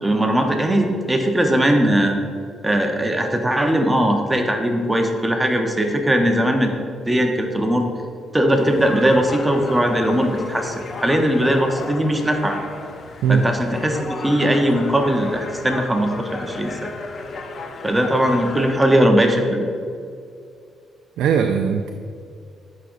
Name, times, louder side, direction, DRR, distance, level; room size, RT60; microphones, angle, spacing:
voice 1, 0.0-2.2 2.6-6.7 7.1-7.8 8.3-12.6 13.3-16.9 17.8-19.6, right 1 dB, 15° right, 3 dB, 0.8 m, -19 dB
sound 1, 8.6-18.8, left 3 dB, 50° left, 0.6 m, -34 dB
voice 2, 21.2-21.9, right 6 dB, 80° right, 5 dB, 0.3 m, -19 dB
11.0 x 5.0 x 2.6 m, 2.3 s
cardioid pair, 90°, 0 cm